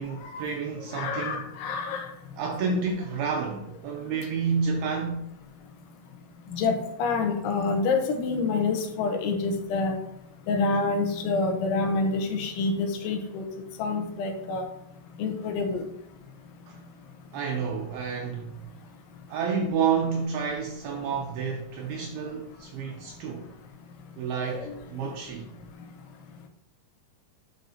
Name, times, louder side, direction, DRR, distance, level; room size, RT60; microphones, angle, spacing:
voice 1, 0.0-1.5 2.4-5.3 16.7-16.8 17.3-18.6 19.3-23.5 24.2-25.5, right 5 dB, 80° right, 2.3 m, -30 dB
voice 2, 0.9-2.1 6.5-10.0 10.5-13.4 13.8-14.7 15.2-15.8 24.5-24.7, left 3 dB, 90° left, 3.4 m, -27 dB
10.0 x 5.9 x 2.9 m
omnidirectional pair, 5.3 m